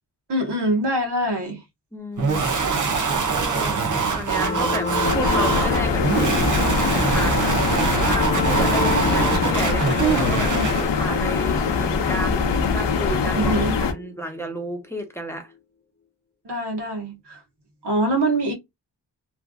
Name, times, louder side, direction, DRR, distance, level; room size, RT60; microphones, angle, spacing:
voice 1, 0.3-1.6 13.3-13.8 16.4-17.4 17.8-18.5, right 1 dB, 75° right, 1.3 m, -24 dB
voice 2, 1.9-2.4 2.7-3.8 4.1-6.1 6.9-10.5 10.9-15.5, right 1 dB, 5° left, 0.8 m, -32 dB
sound 1, 2.2-10.9, right 5 dB, 45° right, 0.9 m, -23 dB
sound 2, 4.3-14.8, left 3 dB, 25° left, 0.5 m, -31 dB
sound 3, 5.0-13.9, left 5 dB, 85° left, 0.7 m, -23 dB
3.2 x 2.5 x 2.3 m
wide cardioid pair, 95°, 41 cm